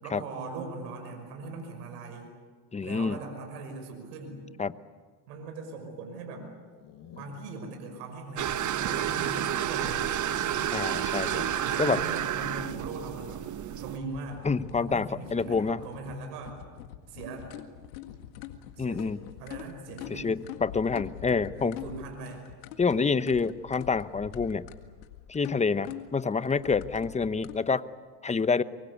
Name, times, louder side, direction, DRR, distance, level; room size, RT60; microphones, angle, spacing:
voice 1, 0.0-2.3 2.8-4.4 5.3-6.5 7.1-10.1 11.6-13.4 13.8-14.5 14.8-16.6 17.1-17.5 18.8-20.3 21.5-22.4, right 3 dB, 80° right, 4 dB, 5.8 m, -40 dB
voice 2, 2.7-3.2 4.6-4.7 10.7-12.0 14.4-15.8 18.8-19.2 20.1-21.8 22.8-24.7 25.3-27.9 28.2-28.6, left 5 dB, 15° left, 15 dB, 0.8 m, -27 dB
sound 1, 6.6-7.6 8.2-10.8 11.1-12.2 12.4-12.5 12.8-13.2, left 8 dB, 55° left, 6.2 m, -49 dB
sound 2, 8.4-14.0, right 10 dB, 35° right, 1.1 m, -30 dB
sound 3, 13.9-27.6, left 12 dB, 90° left, 1.9 m, -44 dB
24.0 x 24.0 x 8.4 m, 1.5 s
supercardioid pair, 95°, 50 cm